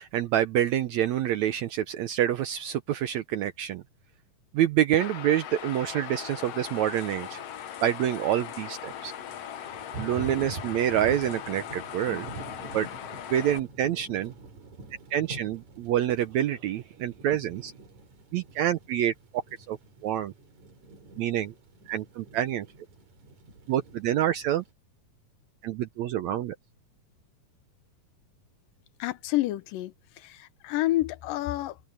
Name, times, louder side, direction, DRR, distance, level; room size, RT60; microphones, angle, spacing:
voice 1, 0.0-3.8 4.5-7.4 7.8-9.1 10.0-12.3 12.7-12.9 13.3-14.3 15.1-17.7 18.3-19.4 19.7-19.8 20.0-20.3 21.2-21.5 21.9-22.7 23.7-24.6 25.6-26.6, right 11 dB, 75° right, 1.8 m, -27 dB
sound 1, 5.0-13.6, left 10 dB, 60° left, 1.7 m, -39 dB
Thunder / Rain, 6.6-24.7, right 2 dB, 55° right, 5.5 m, -45 dB
voice 2, 29.0-31.8, left 16 dB, 80° left, 2.5 m, -29 dB
omnidirectional pair, 3.9 m